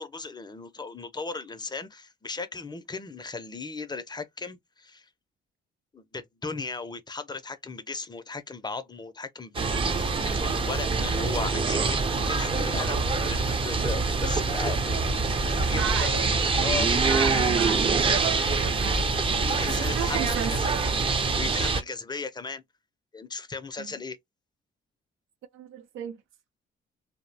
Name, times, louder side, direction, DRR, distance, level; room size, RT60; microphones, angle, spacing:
voice 1, 0.0-5.1 5.9-16.2 16.5-17.4 19.4-20.2 20.5-20.7 21.1-22.6 23.1-24.2, left 4 dB, 20° left, 0.5 m, -37 dB
sound 1, 9.5-21.8, right 4 dB, 25° right, 0.5 m, -25 dB
voice 2, 15.7-16.3 17.1-19.2 19.6-20.8 23.8-23.9 25.5-26.2, right 9 dB, 85° right, 0.5 m, -34 dB
2.6 x 2.1 x 2.6 m
cardioid pair, 90°, 20 cm